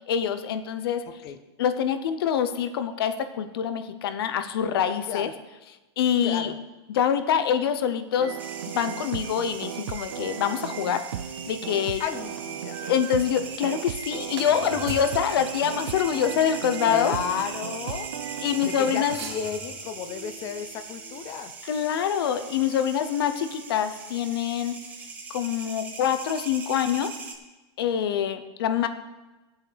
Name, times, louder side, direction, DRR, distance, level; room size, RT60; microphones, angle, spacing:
voice 1, 0.1-1.0 1.6-5.3 6.0-6.5 6.9-8.4 8.7-11.0 11.5-12.0 12.8-17.1 18.4-19.2 21.6-24.8 25.3-27.1 27.8-28.9, left 8 dB, 55° left, 10 dB, 0.8 m, -25 dB
voice 2, 1.1-1.4 5.1-5.3 6.2-6.6 12.0-12.8 16.8-18.1 18.7-21.5, left 8 dB, 20° left, 10 dB, 0.4 m, -33 dB
sound 1, 8.2-19.1, right 10 dB, 80° right, 0.5 m, -36 dB
sound 2, 8.4-27.3, right 4 dB, 10° right, 0.8 m, -41 dB
sound 3, 14.4-18.2 19.0-21.3, right 6 dB, 65° right, 2.3 m, -43 dB
16.5 x 8.2 x 3.4 m, 1.1 s
supercardioid pair, 170°, 15 cm